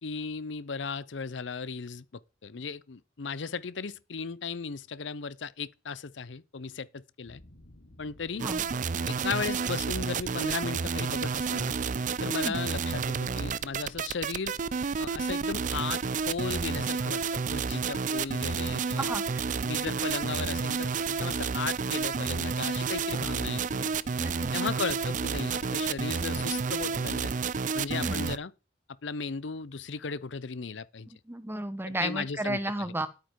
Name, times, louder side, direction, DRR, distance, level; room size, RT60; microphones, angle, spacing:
voice 1, 0.0-7.4 8.0-8.4 9.1-11.8 12.2-14.5 15.0-19.1 19.6-23.9 24.5-27.3 27.7-28.5 29.0-31.1 31.9-32.9, left 5 dB, 80° left, 0.7 m, -36 dB
sound 1, 7.2-27.2, left 1 dB, 65° left, 1.6 m, -55 dB
sound 2, 8.4-28.4, right 5 dB, 45° right, 0.5 m, -30 dB
voice 2, 19.0-19.6 24.2-24.5 27.9-28.3 31.1-33.1, right 1 dB, 10° right, 1.0 m, -34 dB
11.5 x 8.9 x 4.6 m
head